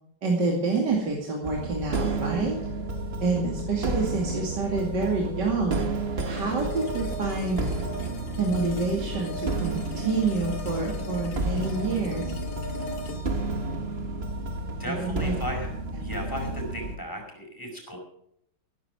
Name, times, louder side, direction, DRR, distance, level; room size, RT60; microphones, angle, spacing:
voice 1, 0.2-2.6 3.2-5.8 6.2-7.7 8.4-12.3 14.9-15.4 15.9-16.0, right 3 dB, 70° right, -1 dB, 3.1 m, -27 dB
sound 1, 1.4-17.0, right 2 dB, 35° right, 1.5 m, -31 dB
sound 2, 6.3-15.3, left 3 dB, 90° left, 2.7 m, -40 dB
voice 2, 14.8-18.0, equal, 10° left, 1 dB, 5.2 m, -35 dB
15.0 x 14.0 x 4.9 m, 0.72 s
omnidirectional pair, 2.0 m